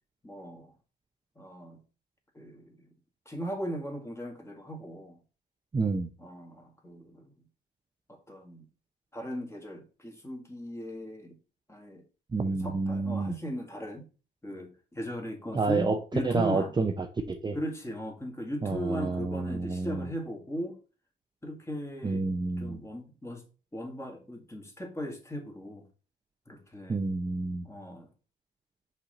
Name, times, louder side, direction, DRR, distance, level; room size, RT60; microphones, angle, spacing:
voice 1, 0.2-0.7 1.4-1.8 2.3-2.9 3.3-5.2 6.2-7.5 8.1-8.7 9.1-11.4 11.7-12.0 12.4-14.1 14.4-16.7 17.5-20.8 21.4-22.3 22.6-23.4 23.7-25.8 26.5-27.0 27.6-28.1, equal, 15° left, 2.2 m, -38 dB
voice 2, 5.7-6.1 12.3-13.3 15.5-16.0 16.2-16.9 17.3-17.6 18.6-20.1 22.0-22.8 26.9-27.7, right 3 dB, 20° right, 0.7 m, -29 dB
5.8 x 4.3 x 5.2 m
cardioid pair, 90°, 20 cm